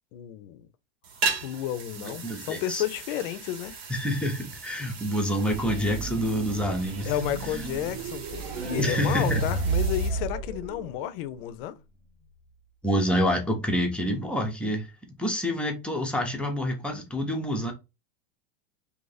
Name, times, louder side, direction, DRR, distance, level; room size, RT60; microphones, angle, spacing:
voice 1, 0.1-0.7 1.4-3.7 7.0-11.8, left 12 dB, 60° left, 0.5 m, -32 dB
sound 1, 1.0-10.1, right 4 dB, 70° right, 1.2 m, -38 dB
voice 2, 2.0-2.8 3.9-7.1 8.8-9.4 12.8-14.9 15.2-17.7, equal, 5° left, 0.5 m, -27 dB
sound 2, 5.5-9.7, right 7 dB, 40° right, 0.8 m, -38 dB
sound 3, 8.4-11.4, right 3 dB, 90° right, 1.7 m, -29 dB
2.8 x 2.5 x 3.9 m
supercardioid pair, 145°, 31 cm